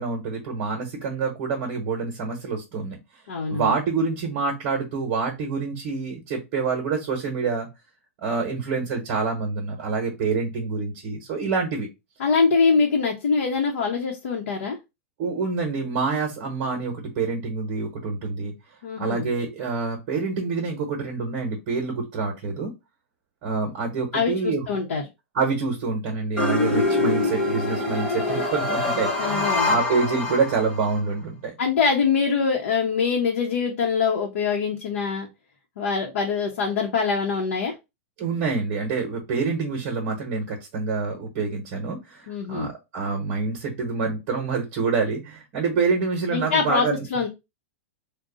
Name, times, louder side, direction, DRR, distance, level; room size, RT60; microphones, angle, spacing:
voice 1, 0.0-3.0 3.5-7.7 8.2-11.9 15.2-18.5 19.0-22.7 23.4-24.6 25.3-31.5 38.2-47.1, right 4 dB, 35° right, 1 dB, 1.1 m, -27 dB
voice 2, 3.3-3.7 12.2-14.8 18.8-19.3 24.1-25.0 29.2-29.7 31.6-35.3 35.8-37.7 42.3-42.7 46.3-47.3, left 5 dB, 70° left, 0 dB, 0.9 m, -24 dB
sound 1, 26.4-31.0, left 2 dB, 10° left, 0.6 m, -25 dB
3.8 x 2.3 x 3.8 m, 0.24 s
supercardioid pair, 175°, 7 cm